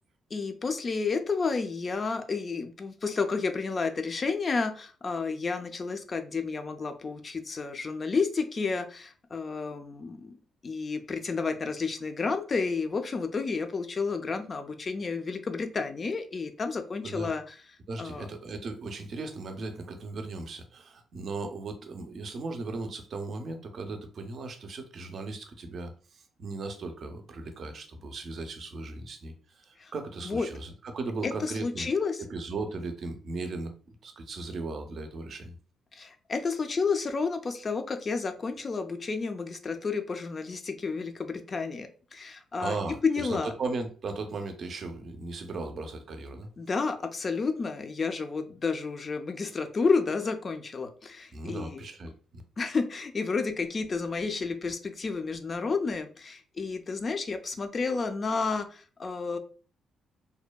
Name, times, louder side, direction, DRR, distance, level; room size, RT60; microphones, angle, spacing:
voice 1, 0.3-10.4 10.6-17.5 18.0-18.3 29.8-29.9 30.2-30.5 31.2-32.2 35.9-42.8 43.0-43.5 46.6-51.8 52.6-59.4, left 4 dB, 35° left, 8 dB, 0.4 m, -31 dB
voice 2, 17.9-31.9 32.3-35.5 42.6-46.5 51.3-52.4, right 3 dB, 55° right, 6 dB, 0.5 m, -37 dB
2.6 x 2.1 x 2.2 m, 0.38 s
cardioid pair, 90°, 0 cm